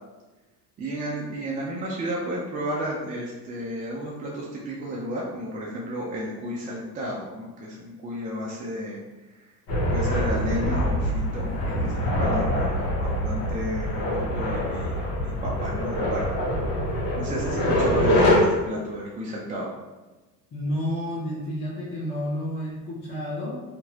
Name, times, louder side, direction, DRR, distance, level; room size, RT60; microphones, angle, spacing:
voice 1, 0.8-9.0 9.9-16.3 17.2-19.7, equal, 20° right, -4 dB, 0.3 m, -32 dB
sound 1, 9.7-18.4, left 1 dB, 60° left, 1.2 m, -24 dB
voice 2, 20.5-23.6, equal, 20° left, -8 dB, 0.9 m, -30 dB
2.8 x 2.5 x 2.7 m, 1.2 s
hypercardioid pair, 80°, 49 cm